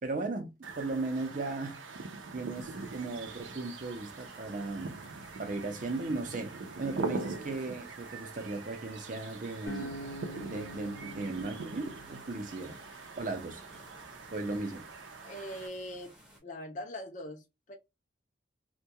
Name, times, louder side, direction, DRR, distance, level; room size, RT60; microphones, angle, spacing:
voice 1, 0.0-1.8 2.3-4.9 5.4-6.5 6.8-10.0 10.4-12.7 13.2-13.6 14.3-14.9, right 3 dB, 45° right, 0.5 m, -36 dB
Birds & Wind, 0.6-15.7, right 3 dB, 90° right, 0.5 m, -42 dB
sound 1, 2.5-16.4, equal, 5° right, 0.6 m, -56 dB
Acoustic guitar, 9.7-12.9, equal, 70° left, 0.7 m, -45 dB
voice 2, 15.2-16.1 16.4-17.7, equal, 40° left, 0.5 m, -41 dB
2.2 x 2.2 x 2.7 m
head